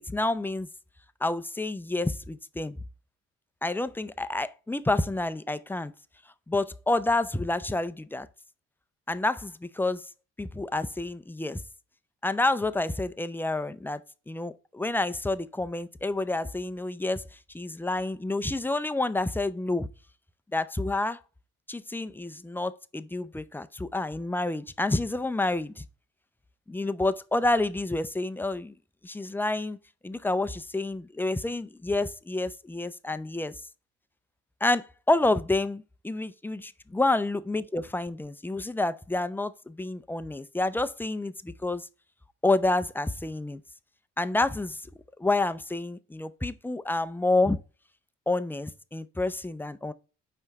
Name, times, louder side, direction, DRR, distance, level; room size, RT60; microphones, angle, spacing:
voice 1, 0.1-0.7 1.2-2.8 3.6-5.9 6.5-8.3 9.1-10.1 10.4-11.6 12.2-14.0 14.3-17.2 17.5-19.9 20.5-21.2 21.7-25.8 26.7-28.7 29.0-29.8 30.0-33.6 34.6-41.9 42.4-43.6 44.2-44.8 45.2-47.6 48.3-49.9, left 2 dB, 5° left, 0.5 m, -29 dB
5.6 x 4.6 x 4.0 m
cardioid pair, 90°, 30 cm